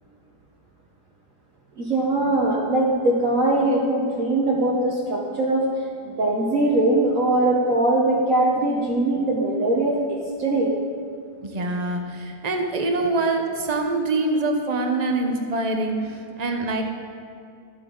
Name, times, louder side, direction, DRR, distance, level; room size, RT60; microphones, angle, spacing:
voice 1, 1.8-5.7 6.0-10.7, right 2 dB, 55° right, -3 dB, 1.3 m, -21 dB
voice 2, 11.4-16.8, right 2 dB, 30° right, 3 dB, 0.8 m, -25 dB
13.0 x 8.6 x 3.8 m, 2.5 s
omnidirectional pair, 1.8 m